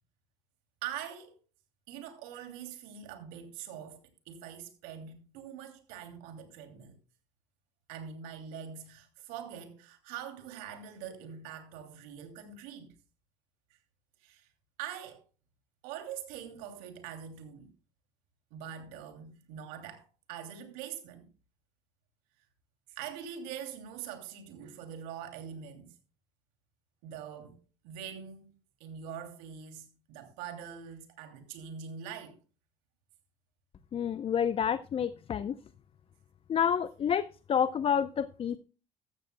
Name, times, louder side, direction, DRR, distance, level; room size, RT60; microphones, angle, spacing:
voice 1, 0.8-1.4 1.9-7.0 7.9-12.9 14.2-14.5 14.8-15.2 15.8-17.7 18.5-21.2 22.9-25.9 27.0-27.6 27.8-28.5 28.8-32.4, right 8 dB, 75° right, 2.8 m, -43 dB
voice 2, 33.9-35.6 36.5-38.6, left 8 dB, 40° left, 0.7 m, -29 dB
14.5 x 13.5 x 2.3 m
hypercardioid pair, 70°, 15 cm